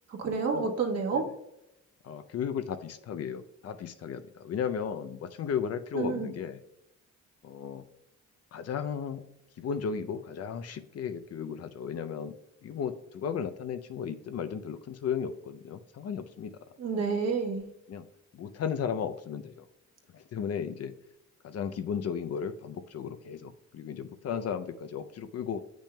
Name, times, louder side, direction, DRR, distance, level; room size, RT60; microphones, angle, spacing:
voice 1, 0.1-1.3 5.9-6.3 16.8-17.6, right 5 dB, 55° right, 1 dB, 1.4 m, -29 dB
voice 2, 2.0-6.6 7.4-7.8 8.5-9.2 9.6-12.3 12.6-16.6 17.9-18.0 18.3-19.7 20.1-20.9 21.4-25.6, left 7 dB, 55° left, 10 dB, 0.6 m, -35 dB
8.3 x 6.2 x 2.2 m, 0.85 s
cardioid pair, 90°, 30 cm